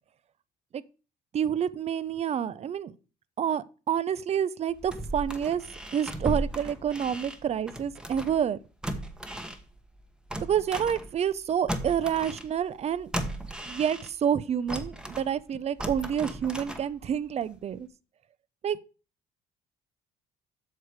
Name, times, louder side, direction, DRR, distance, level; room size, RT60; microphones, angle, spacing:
voice 1, 1.3-2.9 3.4-5.6 5.9-8.6 10.4-13.1 13.7-17.9 18.6-18.8, right 8 dB, 40° right, 0.5 m, -28 dB
sound 1, 4.7-8.5 8.8-11.4 11.7-14.3 14.7-17.2 17.6-17.7, right 1 dB, 5° right, 1.0 m, -36 dB
8.1 x 6.5 x 4.7 m
cardioid pair, 110°, 17 cm